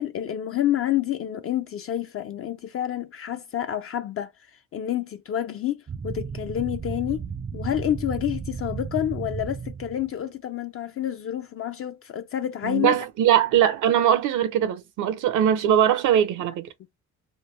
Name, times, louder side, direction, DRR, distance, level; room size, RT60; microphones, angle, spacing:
voice 1, 0.0-4.3 4.7-7.2 7.5-13.0, left 11 dB, 50° left, 0.4 m, -28 dB
sound 1, 5.9-10.1, right 5 dB, 25° right, 0.4 m, -34 dB
voice 2, 12.6-16.7, right 10 dB, 80° right, 0.7 m, -21 dB
3.2 x 2.2 x 3.2 m
cardioid pair, 90°, 30 cm